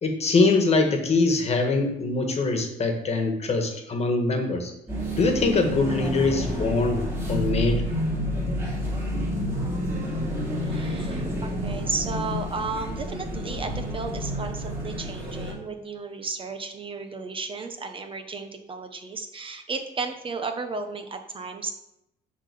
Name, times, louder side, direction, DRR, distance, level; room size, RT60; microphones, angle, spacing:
voice 1, 0.0-4.7 5.2-7.8, left 3 dB, 40° left, 4 dB, 1.6 m, -23 dB
sound 1, 4.9-15.5, equal, 15° right, 3.5 m, -29 dB
voice 2, 10.6-21.7, right 4 dB, 30° right, 6 dB, 1.0 m, -34 dB
10.0 x 3.9 x 6.9 m, 0.85 s
cardioid pair, 110°, 17 cm